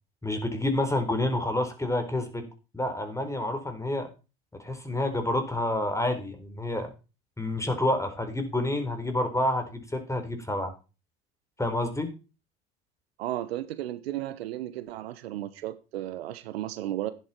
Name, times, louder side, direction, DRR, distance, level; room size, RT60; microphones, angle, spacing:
voice 1, 0.2-2.4 2.7-4.1 4.6-6.9 7.4-10.7 11.6-12.1, left 1 dB, 10° left, 6 dB, 4.6 m, -28 dB
voice 2, 13.2-17.1, right 13 dB, 80° right, 14 dB, 1.1 m, -34 dB
12.5 x 10.0 x 4.6 m, 0.32 s
hypercardioid pair, 70°, 31 cm